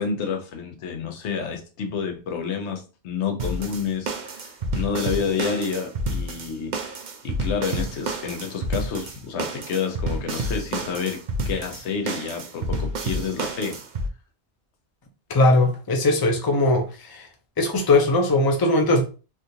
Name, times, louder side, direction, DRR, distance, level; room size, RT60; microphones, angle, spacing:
voice 1, 0.0-13.8, left 6 dB, 90° left, 1.0 m, -29 dB
sound 1, 3.4-14.1, right 1 dB, 55° right, 0.6 m, -29 dB
voice 2, 15.3-17.3 17.6-19.0, left 2 dB, 25° left, 0.5 m, -20 dB
3.5 x 2.5 x 2.7 m
omnidirectional pair, 1.1 m